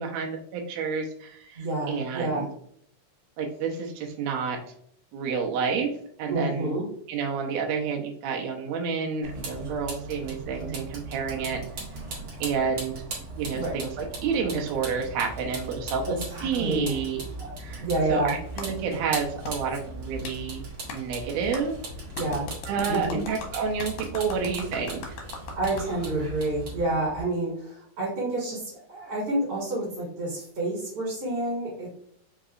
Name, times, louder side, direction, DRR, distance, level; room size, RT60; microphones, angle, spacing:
voice 1, 0.0-2.5 3.4-4.6 5.1-5.9 6.2-6.8 7.1-11.6 12.4-13.0 13.4-17.2 17.6-20.6 20.9-21.8 22.7-25.0, right 6 dB, 90° right, 1 dB, 1.5 m, -29 dB
voice 2, 1.6-2.5 6.3-6.8 13.5-13.8 16.1-17.0 17.8-18.4 22.2-22.5 22.9-23.2 25.6-31.9, right 2 dB, 45° right, -5 dB, 2.4 m, -29 dB
Vehicle, 9.2-27.2, right 2 dB, 65° right, 1.3 m, -38 dB
Clapping, 18.6-18.7 19.4-19.6 20.2-20.4 20.9-21.0 21.5-21.6 22.1-25.9, left 4 dB, 75° left, 1.6 m, -38 dB
5.1 x 2.8 x 2.4 m, 0.65 s
omnidirectional pair, 4.0 m